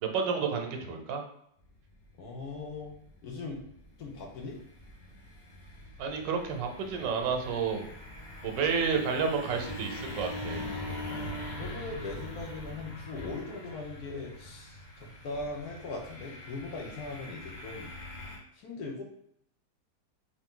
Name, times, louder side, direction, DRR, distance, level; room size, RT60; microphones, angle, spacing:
voice 1, 0.0-1.2 6.0-7.9 8.4-10.6, right 5 dB, 80° right, 4 dB, 1.4 m, -30 dB
sound 1, 1.6-18.4, left 1 dB, 40° left, 0.7 m, -43 dB
voice 2, 2.2-2.9 3.2-3.6 4.0-4.6 11.0-17.9 18.6-19.0, left 3 dB, 65° left, 0 dB, 1.1 m, -40 dB
3.6 x 2.7 x 3.7 m, 0.71 s
omnidirectional pair, 1.9 m